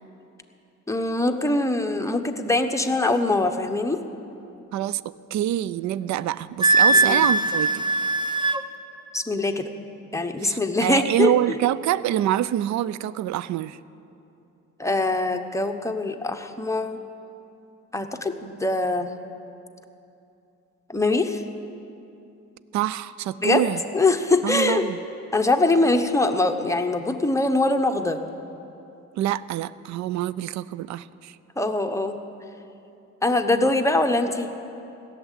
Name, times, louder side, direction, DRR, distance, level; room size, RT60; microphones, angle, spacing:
voice 1, 0.9-4.0 6.9-7.3 9.1-9.7 10.1-11.3 14.8-17.0 17.9-19.1 20.9-21.4 23.4-23.7 23.9-24.9 25.3-28.2 31.6-32.2 33.2-34.5, left 2 dB, 10° left, 5 dB, 0.9 m, -23 dB
voice 2, 4.7-7.8 10.4-13.8 22.7-23.8 24.4-25.0 29.2-31.4, right 12 dB, 65° right, 18 dB, 0.4 m, -26 dB
Wind instrument woodwind instrument, 6.6-8.6, right 3 dB, 15° right, 0.7 m, -20 dB
16.0 x 7.5 x 9.9 m, 2.8 s
cardioid pair, 90°, 30 cm